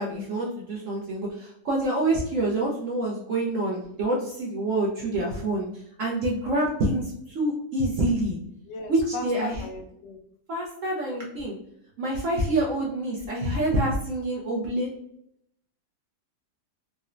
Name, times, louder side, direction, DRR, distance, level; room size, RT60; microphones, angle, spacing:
voice 1, 0.0-5.7 6.0-8.4 8.9-9.7 10.5-11.5 12.0-14.9, right 1 dB, 65° right, -2 dB, 0.8 m, -27 dB
voice 2, 8.7-10.2, left 3 dB, 80° left, 3 dB, 1.2 m, -37 dB
3.8 x 2.1 x 2.4 m, 0.75 s
omnidirectional pair, 1.8 m